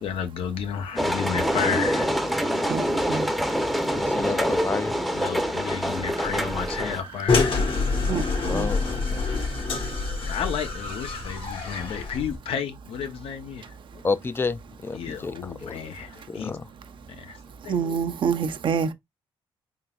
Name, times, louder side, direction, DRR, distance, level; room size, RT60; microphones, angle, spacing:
voice 1, 0.0-2.1 5.1-7.7 9.6-14.0 14.9-16.5 17.2-17.4 17.6-18.0, left 7 dB, 80° left, 0.8 m, -32 dB
sound 1, 1.0-7.0, equal, ahead, 0.7 m, -25 dB
sound 2, 2.8-11.8, right 4 dB, 90° right, 0.8 m, -46 dB
voice 2, 3.9-5.0 8.5-9.3 14.0-15.7 16.3-16.6, left 4 dB, 25° left, 0.4 m, -30 dB
sound 3, 7.3-12.4, left 4 dB, 65° left, 1.3 m, -26 dB
voice 3, 8.1-8.7 17.7-18.9, right 6 dB, 60° right, 0.6 m, -26 dB
3.8 x 3.8 x 2.3 m
cardioid pair, 90°, 9 cm